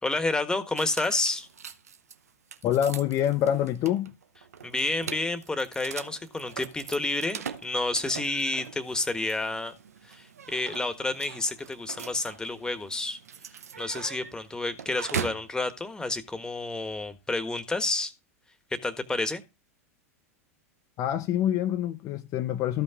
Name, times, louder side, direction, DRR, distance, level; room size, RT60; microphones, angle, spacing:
voice 1, 0.0-1.5 4.6-9.7 10.0-13.2 13.8-18.1 18.8-19.4, left 2 dB, 10° left, 1.4 m, -30 dB
sound 1, 0.8-15.5, right 7 dB, 80° right, 0.8 m, -41 dB
voice 2, 2.6-4.1 21.0-22.8, left 11 dB, 40° left, 0.8 m, -26 dB
14.0 x 5.5 x 3.7 m
hypercardioid pair, 90°, 8 cm